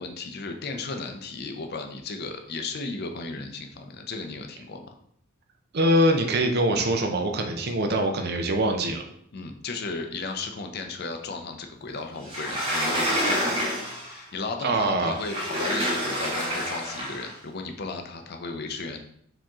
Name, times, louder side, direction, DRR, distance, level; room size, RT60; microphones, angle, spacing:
voice 1, 0.0-5.0 9.3-13.6 14.0-19.0, left 3 dB, 50° left, 5 dB, 0.5 m, -35 dB
voice 2, 5.7-9.0 14.6-15.2, right 1 dB, 50° right, 4 dB, 0.6 m, -23 dB
Sliding door, 12.2-14.2 15.1-17.3, equal, 25° right, 1.3 m, -28 dB
4.9 x 2.9 x 3.6 m, 0.68 s
head